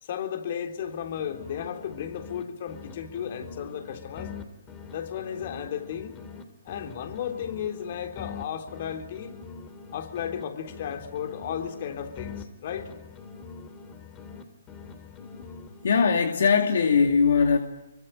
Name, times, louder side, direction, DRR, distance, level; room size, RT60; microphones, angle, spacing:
voice 1, 0.0-4.3 4.9-6.2 6.6-9.4 9.9-12.9, left 8 dB, 50° left, 5 dB, 3.7 m, -34 dB
sound 1, 0.8-2.4 2.7-6.4 6.7-10.4 10.7-14.4 14.7-16.1, left 5 dB, 20° left, 3.1 m, -44 dB
voice 2, 15.8-17.6, left 5 dB, 70° left, 4 dB, 2.5 m, -20 dB
25.5 x 24.0 x 9.2 m, 0.95 s
hypercardioid pair, 140°, 0 cm